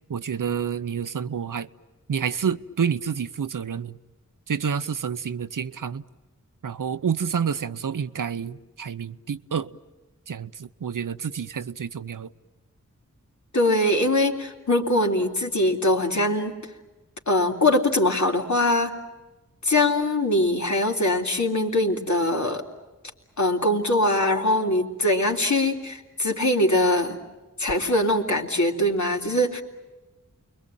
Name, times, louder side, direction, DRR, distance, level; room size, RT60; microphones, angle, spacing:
voice 1, 0.1-1.7 2.1-3.9 4.5-6.0 6.6-9.7 10.3-12.3, right 7 dB, 80° right, 0.8 m, -28 dB
voice 2, 13.5-16.5 17.3-18.9 19.6-22.6 23.4-27.2 27.6-29.6, left 1 dB, 65° left, 3.5 m, -22 dB
29.5 x 22.5 x 9.0 m
wide cardioid pair, 50°, 32 cm